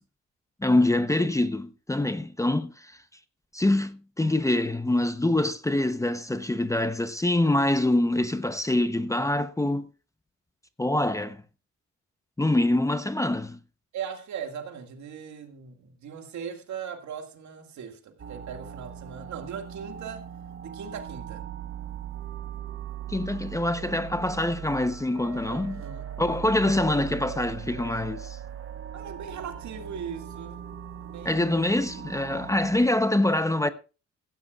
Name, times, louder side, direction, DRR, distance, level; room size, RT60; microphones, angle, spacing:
voice 1, 0.6-2.9 3.5-9.9 10.8-11.4 12.4-13.6 23.1-25.8 26.2-28.4 31.2-33.7, left 1 dB, 10° left, 0.8 m, -25 dB
voice 2, 13.9-20.2 20.6-21.4 25.4-26.0 28.9-30.6 31.0-31.5, right 7 dB, 70° right, 2.1 m, -39 dB
sound 1, 18.2-32.9, right 9 dB, 45° right, 1.1 m, -39 dB
16.0 x 15.0 x 2.4 m
cardioid pair, 90°, 30 cm